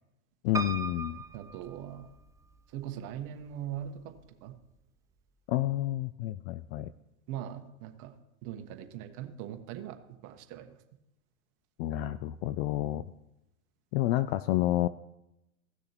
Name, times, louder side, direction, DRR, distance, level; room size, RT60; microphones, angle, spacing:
voice 1, 0.4-1.2 5.5-6.9 11.8-13.0 13.9-14.9, left 15 dB, 50° left, 15 dB, 0.4 m, -29 dB
Piano, 0.5-2.5 3.1-3.9 4.2-4.3 4.5-4.6, right 3 dB, 10° right, 0.5 m, -38 dB
voice 2, 1.3-2.1 2.7-4.1 4.4-4.5 7.3-8.1 8.4-10.0 10.2-10.7, right 10 dB, 45° right, 6 dB, 1.3 m, -40 dB
17.0 x 6.6 x 3.0 m, 0.89 s
hypercardioid pair, 105°, 42 cm